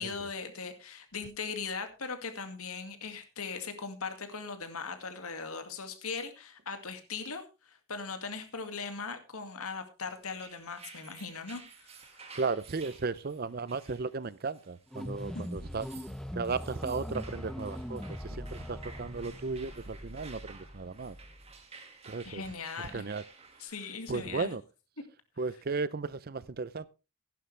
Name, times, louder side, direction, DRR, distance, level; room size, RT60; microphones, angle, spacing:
voice 1, 0.0-12.2 15.3-15.4 22.3-23.0 23.6-24.5, left 5 dB, 80° left, 2.2 m, -39 dB
sound 1, 10.2-23.7, right 4 dB, 30° right, 1.9 m, -53 dB
voice 2, 12.3-15.9 16.3-21.2 22.1-22.4 22.9-23.2 24.1-24.6 25.4-26.9, right 4 dB, 45° right, 0.5 m, -35 dB
sound 2, 14.9-21.5, equal, ahead, 0.7 m, -42 dB
15.5 x 11.0 x 3.3 m
head